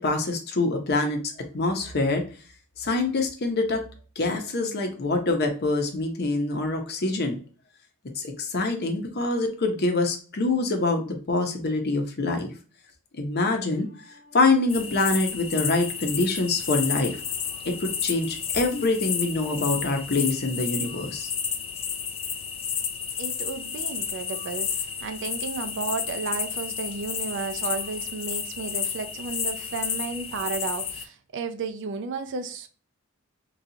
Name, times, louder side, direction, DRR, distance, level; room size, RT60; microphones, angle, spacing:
voice 1, 0.0-2.2 2.8-3.8 4.2-7.4 8.1-12.5 13.2-17.2 17.7-21.3, left 2 dB, 50° left, 0.8 m, -25 dB
sound 1, 14.7-31.0, left 7 dB, 25° left, 0.3 m, -31 dB
voice 2, 23.2-32.7, right 4 dB, 60° right, 0.4 m, -33 dB
4.0 x 2.4 x 2.7 m
head